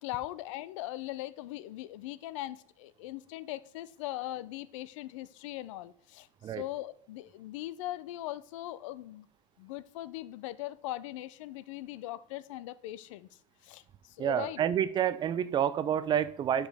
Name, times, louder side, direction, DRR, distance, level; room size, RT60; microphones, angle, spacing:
voice 1, 0.0-9.3 9.6-13.3 13.6-14.6, left 15 dB, 75° left, 16 dB, 0.5 m, -40 dB
voice 2, 14.2-16.7, right 9 dB, 30° right, 15 dB, 0.5 m, -29 dB
11.5 x 5.2 x 3.4 m, 0.67 s
supercardioid pair, 120°, 16 cm